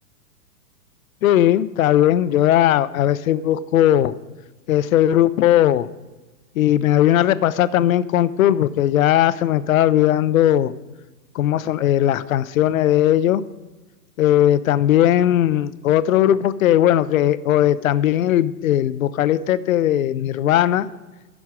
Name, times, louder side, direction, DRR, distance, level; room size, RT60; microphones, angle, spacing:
voice 1, 1.2-4.1 4.7-5.9 6.6-10.7 11.3-13.4 14.2-20.9, left 12 dB, 55° left, 15 dB, 0.6 m, -18 dB
14.5 x 6.3 x 4.7 m, 1.2 s
hypercardioid pair, 155°, 49 cm